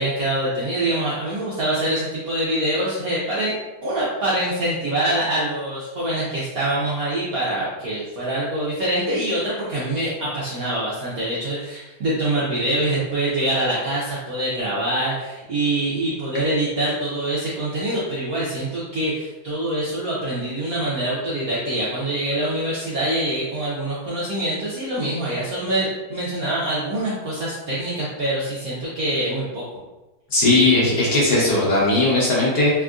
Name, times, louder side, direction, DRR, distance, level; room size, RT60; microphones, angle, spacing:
voice 1, 0.0-3.5 3.8-29.6, right 1 dB, 70° right, -7 dB, 0.8 m, -24 dB
voice 2, 30.3-32.7, left 2 dB, 60° left, -6 dB, 1.2 m, -18 dB
3.5 x 2.4 x 2.3 m, 1.1 s
omnidirectional pair, 2.2 m